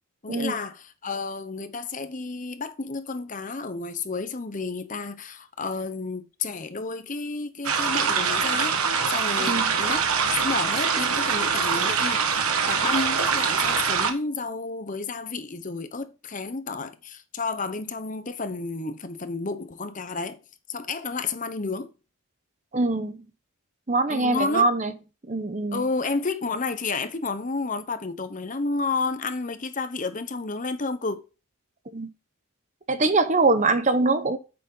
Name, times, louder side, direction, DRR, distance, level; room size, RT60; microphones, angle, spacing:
voice 1, 0.2-8.8 9.1-12.4 12.7-20.4 20.7-21.9 24.1-24.7 25.7-31.2, left 3 dB, 35° left, 0.8 m, -31 dB
sound 1, 7.6-14.1, right 6 dB, 75° right, 1.4 m, -24 dB
voice 2, 9.4-9.7 22.7-23.2 23.9-24.9 25.3-25.8 31.9-32.1 32.9-34.4, right 3 dB, 35° right, 0.8 m, -23 dB
9.0 x 6.8 x 3.8 m
head